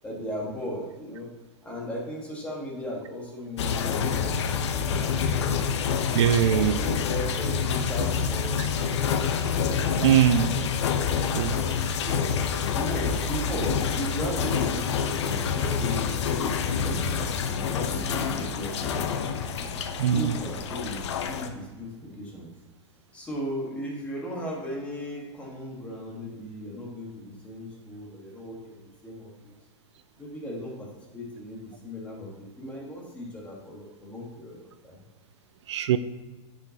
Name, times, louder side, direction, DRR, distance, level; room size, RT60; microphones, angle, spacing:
voice 1, 0.0-1.3 1.6-5.6 6.3-9.0 11.6-19.1 19.5-19.8 20.1-22.5 23.1-29.6 30.2-35.0, equal, 10° left, -3 dB, 1.4 m, -37 dB
sound 1, 3.6-21.5, left 6 dB, 65° left, 0.8 m, -27 dB
voice 2, 6.1-6.8 8.6-8.7 10.0-10.5 11.3-11.6 20.0-20.3 35.7-36.0, right 10 dB, 70° right, 12 dB, 0.4 m, -21 dB
9.8 x 6.9 x 2.8 m, 1.3 s
supercardioid pair, 170°, 15 cm